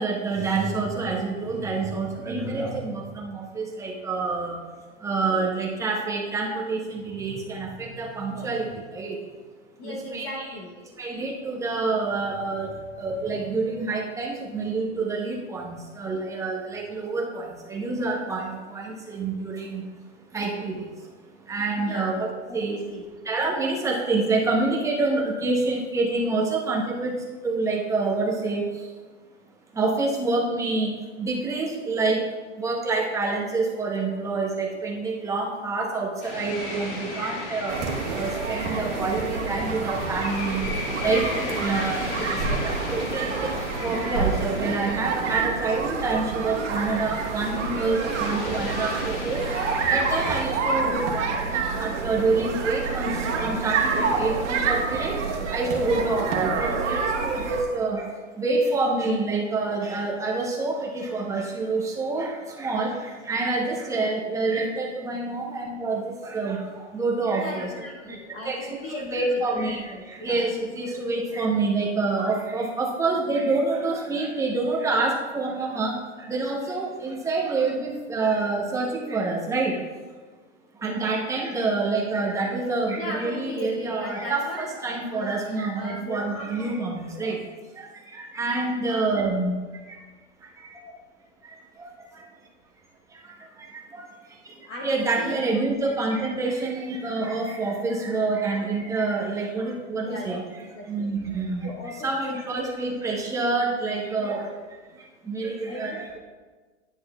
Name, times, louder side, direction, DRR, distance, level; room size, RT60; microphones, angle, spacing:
voice 1, 0.0-4.6 5.0-9.2 9.8-10.5 11.0-19.9 20.3-21.1 21.4-22.3 22.5-22.8 23.2-28.9 29.7-40.7 41.0-41.3 41.6-42.0 42.6-49.5 49.9-67.7 68.1-68.2 68.4-68.8 69.1-79.8 80.7-87.5 87.7-90.0 90.4-90.7 91.4-92.2 93.1-100.4 100.9-104.5 104.9-106.2, right 3 dB, 10° right, -2 dB, 0.8 m, -27 dB
voice 2, 9.8-10.8 21.7-22.1 22.5-23.0 41.3-42.7 67.4-69.7 69.9-70.3 83.0-86.7 87.1-87.3 90.7-90.9 94.6-95.4 100.0-101.1 101.6-102.9 104.2-104.5 105.7-106.0, left 2 dB, 25° left, -1 dB, 0.8 m, -37 dB
sound 1, 36.2-50.3, left 2 dB, 45° left, 2.0 m, -36 dB
sound 2, 37.7-57.6, right 4 dB, 70° right, 1.4 m, -28 dB
9.9 x 6.2 x 2.3 m, 1.4 s
hypercardioid pair, 135°, 37 cm